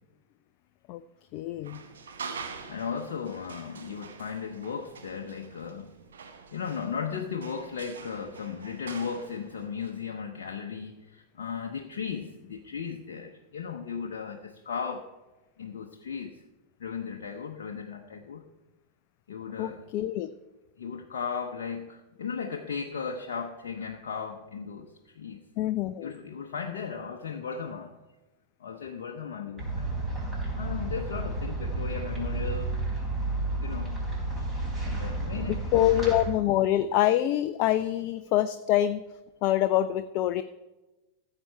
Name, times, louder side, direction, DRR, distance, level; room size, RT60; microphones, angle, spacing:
voice 1, 1.3-1.8 19.6-20.3 25.6-26.1 35.5-39.0 39.4-40.4, left 13 dB, 40° left, 12 dB, 0.4 m, -25 dB
sound 1, 1.6-9.9, right 5 dB, 65° right, 1.1 m, -45 dB
voice 2, 2.7-5.9 6.5-15.1 15.6-16.4 16.8-18.4 19.3-19.8 20.8-25.4 26.0-27.9 28.6-30.0 30.5-32.8 33.5-34.0 34.8-35.9, left 6 dB, 60° left, 3 dB, 0.8 m, -36 dB
sound 2, 29.6-36.3, right 2 dB, 15° right, 4.7 m, -31 dB
14.5 x 7.7 x 4.5 m, 1.1 s
figure-of-eight pair, 90°, 0 cm